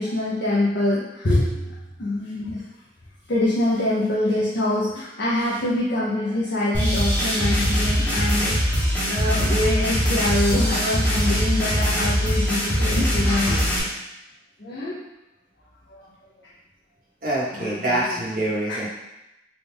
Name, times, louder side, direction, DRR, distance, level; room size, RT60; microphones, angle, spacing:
voice 1, 0.0-2.6 3.3-13.5 14.6-15.0 15.9-16.0 17.6-18.0 18.7-18.8, left 1 dB, 70° left, -8 dB, 0.7 m, -25 dB
sound 1, 6.7-13.8, equal, 10° left, 0.9 m, -22 dB
voice 2, 17.2-18.9, right 1 dB, 50° right, -7 dB, 1.2 m, -25 dB
4.0 x 2.4 x 3.4 m, 0.93 s
head